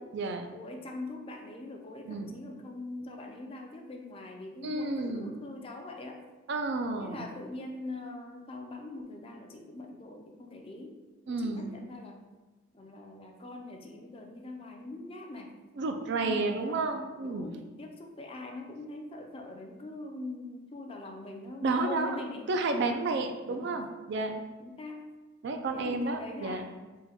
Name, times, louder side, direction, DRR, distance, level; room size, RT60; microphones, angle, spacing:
voice 1, 0.0-0.5 2.0-2.3 4.6-5.3 6.5-7.3 11.3-11.8 15.8-17.5 21.6-22.2 22.5-24.3 25.4-26.6, right 3 dB, 60° right, 5 dB, 0.4 m, -31 dB
voice 2, 0.5-6.2 7.0-11.0 11.3-12.3 12.7-15.6 16.2-16.8 17.2-22.4 23.4-23.8 24.6-25.1 25.7-26.8, left 2 dB, 30° left, 2 dB, 0.4 m, -42 dB
3.7 x 2.2 x 4.2 m, 1.2 s
head